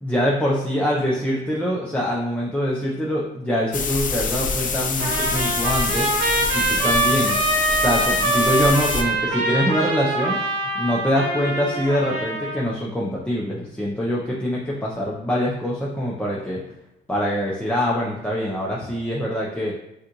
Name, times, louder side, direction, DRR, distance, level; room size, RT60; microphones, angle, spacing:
voice 1, 0.0-6.1 6.5-7.4 7.8-10.4 10.7-16.6 17.1-19.7, equal, 5° left, -4 dB, 0.7 m, -24 dB
sound 1, 3.7-9.0, left 5 dB, 40° left, 0.6 m, -26 dB
Trumpet, 5.0-12.7, right 2 dB, 85° right, 1.0 m, -24 dB
6.3 x 2.5 x 3.1 m, 0.86 s
cardioid pair, 90°, 20 cm